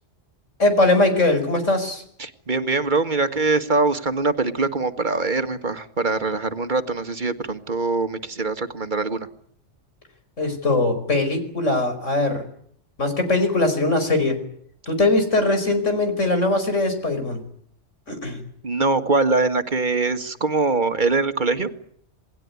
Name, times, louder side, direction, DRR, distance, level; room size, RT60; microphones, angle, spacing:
voice 1, 0.6-2.0 10.4-12.4 13.0-14.4 14.9-17.4 18.1-18.4, left 2 dB, 85° left, 7 dB, 5.4 m, -21 dB
voice 2, 2.2-9.3 18.6-21.7, right 3 dB, 40° right, 9 dB, 1.9 m, -23 dB
28.0 x 19.5 x 9.7 m, 0.67 s
omnidirectional pair, 1.2 m